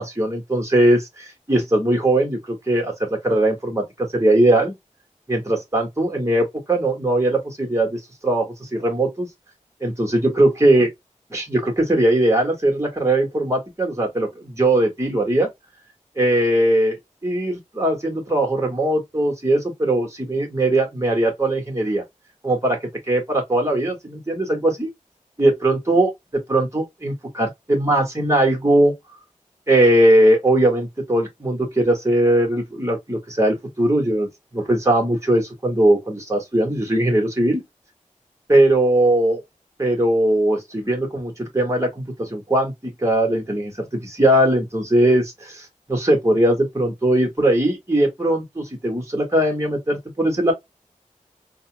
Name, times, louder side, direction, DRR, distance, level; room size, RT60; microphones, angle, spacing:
voice 1, 0.0-4.7 5.3-9.3 9.8-10.9 11.3-15.5 16.2-22.0 22.4-22.8 23.1-24.9 25.4-26.1 26.5-28.9 29.7-37.6 38.5-39.4 39.8-50.5, right 1 dB, 20° right, 1.8 m, -20 dB
4.0 x 2.6 x 2.2 m
wide cardioid pair, 50°, 13 cm